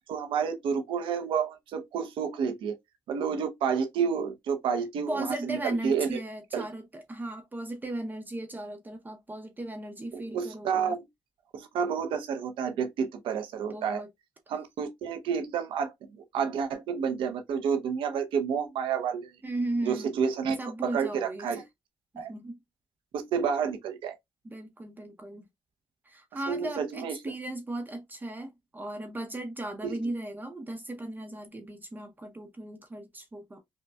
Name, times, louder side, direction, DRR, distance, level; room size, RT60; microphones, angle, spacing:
voice 1, 0.1-2.7 3.1-6.2 6.5-6.6 10.1-11.1 11.5-14.0 14.5-19.3 19.8-20.6 20.8-21.6 22.2-22.3 23.1-24.2 26.5-27.2 29.8-30.0, right 6 dB, 85° right, 0.7 m, -30 dB
voice 2, 5.1-10.9 13.7-14.1 19.4-20.1 20.6-21.6 22.1-22.6 24.4-25.5 26.0-33.6, right 1 dB, 20° right, 0.7 m, -36 dB
5.3 x 2.2 x 2.2 m
cardioid pair, 90°, 8 cm